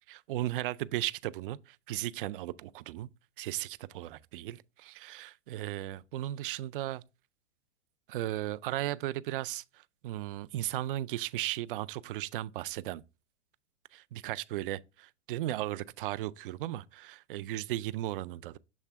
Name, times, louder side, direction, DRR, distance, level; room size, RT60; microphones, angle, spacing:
voice 1, 0.1-3.1 3.4-7.0 8.1-9.6 10.0-13.0 13.9-18.6, right 15 dB, 50° right, 0.4 m, -36 dB
7.3 x 3.2 x 4.5 m
hypercardioid pair, 125°, 36 cm